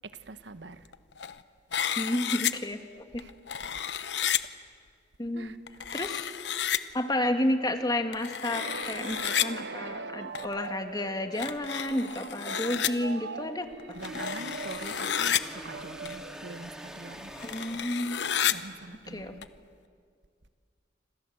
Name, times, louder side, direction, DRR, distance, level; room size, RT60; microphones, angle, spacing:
voice 1, 0.0-0.9 3.2-3.3 5.3-5.6 12.8-13.0 13.9-17.3 18.5-19.5, right 3 dB, 90° right, 11 dB, 1.2 m, -44 dB
sound 1, 0.9-1.4 1.7-2.5 3.2-4.4 5.7-6.8 8.1-9.5 10.3-10.5 11.3-12.9 13.8-15.4 16.1-16.2 16.6-16.7 17.4-18.5 19.4-19.5, left 9 dB, 75° left, 0.9 m, -31 dB
voice 2, 2.0-2.8 3.1-3.2 5.2-5.6 5.9-6.2 6.9-13.7 17.4-18.2 19.1-19.4, left 1 dB, 25° left, 6 dB, 1.8 m, -31 dB
sound 2, 8.4-17.2, right 4 dB, 70° right, 0.8 m, -41 dB
sound 3, 14.0-18.6, equal, 5° right, 2.4 m, -45 dB
27.5 x 27.0 x 7.9 m, 2.1 s
head